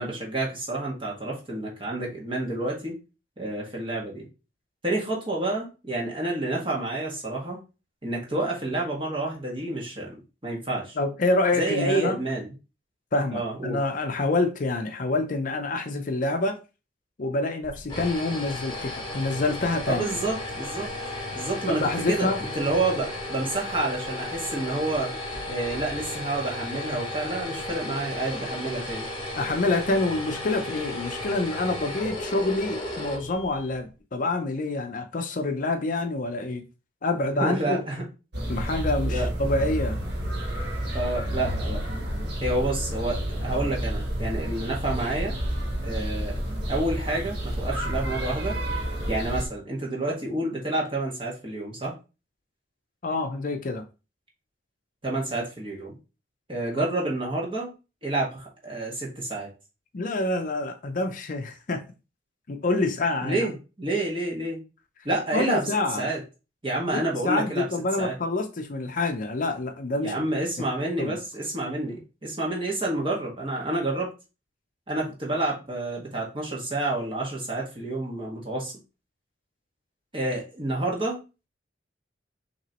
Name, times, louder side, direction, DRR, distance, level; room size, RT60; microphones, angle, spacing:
voice 1, 0.0-2.9 3.4-4.3 4.8-7.6 8.0-10.2 10.4-11.0 11.5-12.5 13.3-13.8 19.9-20.9 21.3-21.8 22.1-25.1 25.5-29.0 37.4-38.0 39.0-39.3 40.9-41.8 42.4-45.4 45.8-46.4 46.7-48.6 49.1-51.9 55.0-56.0 56.5-57.7 58.0-59.5 63.2-64.6 65.0-65.7 66.0-66.2 66.6-67.6 68.0-68.2 70.0-74.1 74.9-78.7 80.1-81.2, right 2 dB, 30° right, 1.5 m, -29 dB
voice 2, 11.0-12.2 13.1-16.6 17.2-20.1 21.7-22.4 29.4-36.6 37.0-37.8 38.5-40.0 41.2-41.3 53.0-53.8 56.8-56.9 59.9-61.8 62.5-63.5 65.3-66.1 66.9-70.2 71.0-71.2, left 2 dB, 45° left, 0.6 m, -27 dB
sound 1, 17.6-33.8, left 1 dB, 25° left, 1.8 m, -34 dB
sound 2, 38.3-49.5, equal, 65° right, 1.1 m, -30 dB
5.9 x 2.9 x 2.9 m
head